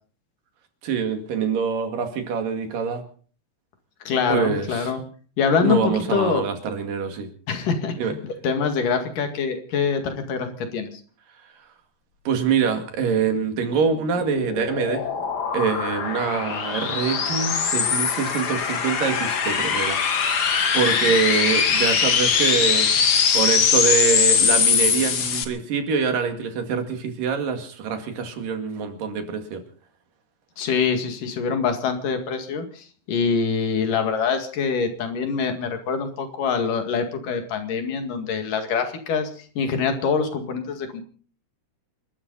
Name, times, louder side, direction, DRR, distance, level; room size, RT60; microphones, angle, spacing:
voice 1, 0.8-3.0 4.3-5.0 5.6-7.3 8.0-8.2 12.3-15.1 15.5-29.6, right 6 dB, 80° right, 6 dB, 3.9 m, -25 dB
voice 2, 4.1-5.0 5.4-6.4 7.5-7.9 8.4-11.0 30.6-41.0, left 5 dB, 75° left, 6 dB, 3.7 m, -24 dB
sound 1, 13.6-25.4, left 6 dB, 50° left, 1.3 m, -22 dB
27.5 x 13.0 x 4.1 m, 0.42 s
omnidirectional pair, 3.8 m